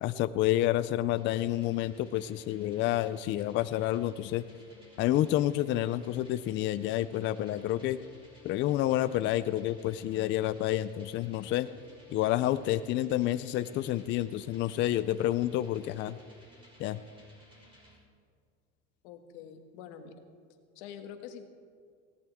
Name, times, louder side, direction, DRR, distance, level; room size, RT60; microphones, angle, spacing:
voice 1, 0.0-4.4 5.0-8.0 8.4-11.7 12.1-16.2 16.8-17.0, left 13 dB, 35° left, 13 dB, 0.4 m, -29 dB
sound 1, 1.1-18.0, equal, 15° right, 5.1 m, -58 dB
voice 2, 19.0-20.2 20.7-21.5, left 8 dB, 85° left, 5 dB, 1.7 m, -46 dB
18.0 x 17.0 x 3.6 m, 2.1 s
cardioid pair, 145°, 34 cm